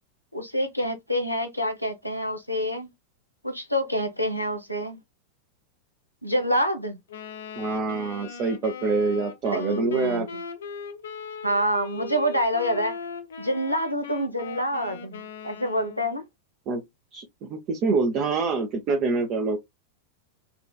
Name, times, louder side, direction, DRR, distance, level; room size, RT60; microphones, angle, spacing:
voice 1, 0.3-2.9 3.4-5.0 6.2-7.0 9.5-10.3 11.4-13.0 13.4-16.2, equal, 90° left, 0.8 m, -27 dB
Wind instrument woodwind instrument, 7.1-16.2, left 5 dB, 65° left, 0.5 m, -39 dB
voice 2, 7.6-10.3 16.7-16.8 17.1-19.6, right 4 dB, 35° right, 0.7 m, -26 dB
4.2 x 2.5 x 2.2 m
figure-of-eight pair, 90°, 0 cm